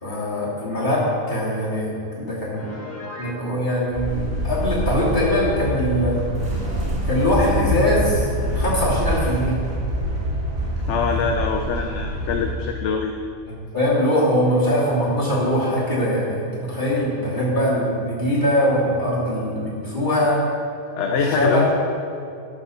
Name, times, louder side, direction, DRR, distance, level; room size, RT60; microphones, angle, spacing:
voice 1, 0.0-2.6 3.2-6.1 7.0-9.5 13.7-20.4 21.1-21.6, equal, 30° left, -7 dB, 2.9 m, -22 dB
Piano, 2.6-3.4, left 2 dB, 10° left, 1.6 m, -36 dB
sound 1, 3.9-12.5, equal, 55° right, 2.6 m, -25 dB
voice 2, 10.9-13.1 21.0-21.7, left 5 dB, 60° left, 4 dB, 0.9 m, -23 dB
11.5 x 4.8 x 6.9 m, 2.5 s
omnidirectional pair, 1.5 m